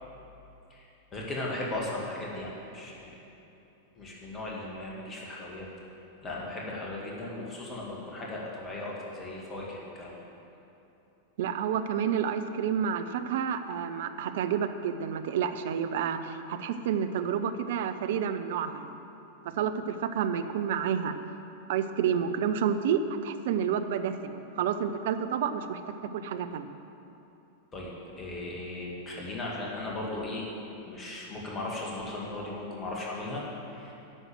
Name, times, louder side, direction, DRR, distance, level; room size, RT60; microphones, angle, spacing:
voice 1, 0.7-3.2 4.0-5.7 6.2-10.2 27.7-30.5 30.8-33.9, left 2 dB, 25° left, -3 dB, 2.1 m, -37 dB
voice 2, 11.4-19.0 19.4-21.2 21.7-25.8 26.1-26.7, right 8 dB, 55° right, 9 dB, 0.6 m, -29 dB
11.0 x 6.4 x 7.7 m, 2.9 s
figure-of-eight pair, 90°, 0 cm